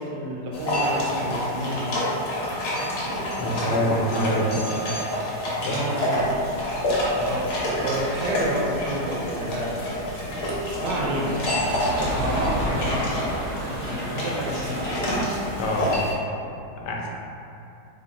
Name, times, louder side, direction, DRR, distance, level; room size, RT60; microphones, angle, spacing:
voice 1, 0.0-2.0 5.4-6.3 7.1-9.9 10.8-15.0, right 1 dB, 80° right, -2 dB, 1.2 m, -30 dB
sound 1, 0.5-16.1, left 1 dB, 60° left, 1.1 m, -28 dB
voice 2, 3.4-4.7 5.7-5.8 15.6-16.0 16.8-17.1, equal, 85° left, -1 dB, 1.2 m, -25 dB
sound 2, 6.1-16.0, equal, 50° right, 0.9 m, -34 dB
3.0 x 2.5 x 3.8 m, 2.7 s
omnidirectional pair, 1.8 m